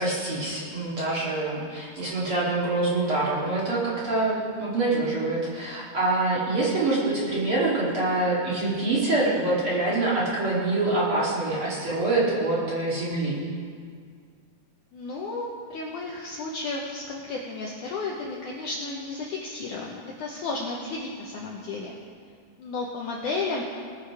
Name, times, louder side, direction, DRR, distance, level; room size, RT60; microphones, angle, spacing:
voice 1, 0.0-13.4, right 2 dB, 40° right, -7 dB, 2.4 m, -25 dB
voice 2, 14.9-21.9 22.6-23.6, left 3 dB, 75° left, -2 dB, 1.9 m, -33 dB
20.0 x 6.8 x 4.8 m, 2.1 s
omnidirectional pair, 4.7 m